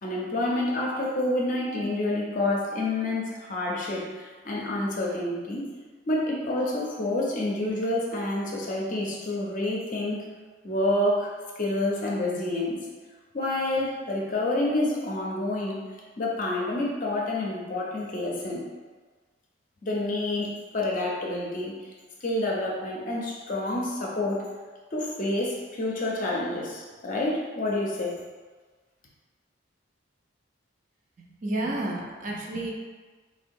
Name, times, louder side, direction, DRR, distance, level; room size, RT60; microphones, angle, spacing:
voice 1, 0.0-5.7 6.1-10.3 10.6-12.8 13.3-18.7 19.8-21.9 22.2-24.5 24.9-28.2, left 1 dB, 40° left, -3 dB, 0.5 m, -28 dB
voice 2, 31.2-32.7, right 1 dB, 40° right, -2 dB, 0.4 m, -31 dB
3.7 x 2.1 x 2.6 m, 1.4 s
head